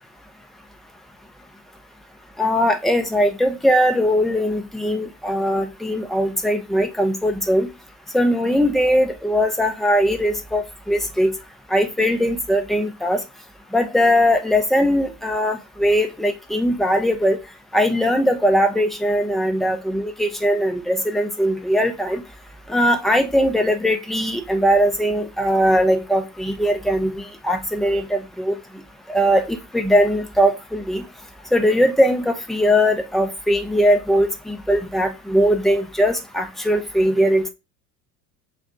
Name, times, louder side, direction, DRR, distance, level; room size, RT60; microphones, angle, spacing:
voice 1, 2.4-7.7 8.1-11.3 11.7-13.2 13.7-17.4 17.7-22.2 22.7-28.6 29.1-31.0 31.5-37.5, equal, ahead, 0.9 m, -20 dB
5.4 x 2.5 x 3.5 m
hypercardioid pair, 75°, 47 cm